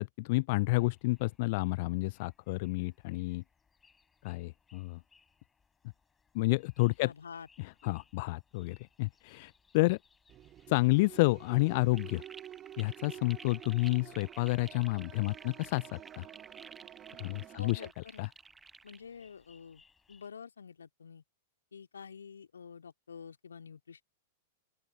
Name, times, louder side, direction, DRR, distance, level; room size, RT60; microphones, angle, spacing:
voice 1, 0.0-3.4 4.2-5.0 6.3-7.1 7.6-10.0 10.7-12.2 12.8-16.3 17.2-18.3, left 23 dB, 50° left, 0.3 m, -30 dB
sound 1, 0.7-20.3, left 5 dB, 15° left, 7.3 m, -69 dB
voice 2, 7.0-7.5 17.6-18.2 18.8-19.8 20.1-21.2 21.7-24.0, left 6 dB, 75° left, 2.9 m, -48 dB
sound 2, 10.3-17.9, right 12 dB, 30° right, 0.5 m, -50 dB
sound 3, 11.9-19.0, right 4 dB, 15° right, 1.3 m, -52 dB
open air
figure-of-eight pair, 100°, 0 cm